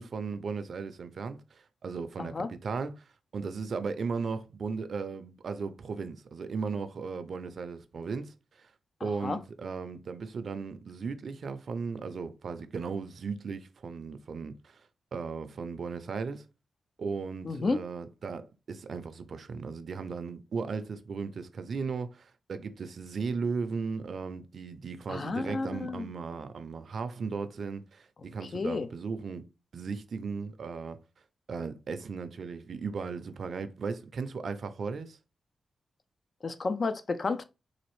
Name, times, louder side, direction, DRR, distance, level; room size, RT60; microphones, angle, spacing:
voice 1, 0.0-3.0 3.3-8.7 9.0-14.8 15.1-16.4 17.0-29.4 29.7-31.0 31.5-35.2, right 5 dB, 65° right, 0.5 m, -36 dB
voice 2, 2.2-2.5 9.0-9.4 17.4-17.8 25.1-26.1 28.5-28.9 36.4-37.4, left 3 dB, 50° left, 0.4 m, -31 dB
4.0 x 2.5 x 3.1 m
cardioid pair, 75°, 0 cm